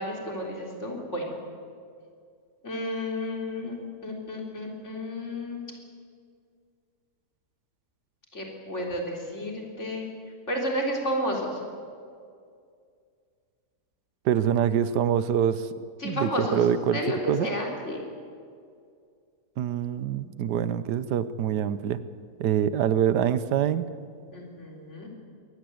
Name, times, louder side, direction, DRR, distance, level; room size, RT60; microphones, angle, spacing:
voice 1, 0.0-1.4 2.6-5.7 8.3-10.1 10.5-11.6 16.0-16.6 16.9-18.0 24.3-25.1, left 1 dB, 45° left, 0 dB, 4.0 m, -32 dB
voice 2, 14.2-15.7 16.0-17.0 17.3-17.5 19.6-22.0 22.4-23.8, right 9 dB, 80° right, 14 dB, 1.4 m, -25 dB
23.0 x 18.5 x 7.9 m, 2.2 s
omnidirectional pair, 1.8 m